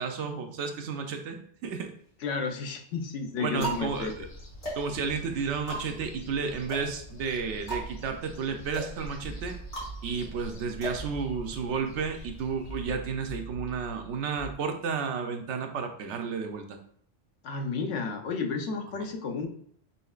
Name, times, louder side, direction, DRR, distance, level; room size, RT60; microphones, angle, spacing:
voice 1, 0.0-1.9 3.4-4.3 4.7-9.6 10.0-16.8, right 5 dB, 80° right, 5 dB, 0.9 m, -32 dB
sound 1, 1.7-2.4 3.0-11.8, right 2 dB, 40° left, 1.7 m, -40 dB
voice 2, 2.2-4.1 17.4-19.5, left 4 dB, 90° left, 4 dB, 1.0 m, -32 dB
sound 2, 3.5-12.9, left 1 dB, 75° left, 1.3 m, -46 dB
sound 3, 7.7-8.6 9.2-10.6 10.9-12.0 12.7-14.5, right 3 dB, 60° right, 0.8 m, -43 dB
5.6 x 3.1 x 2.3 m, 0.63 s
omnidirectional pair, 1.2 m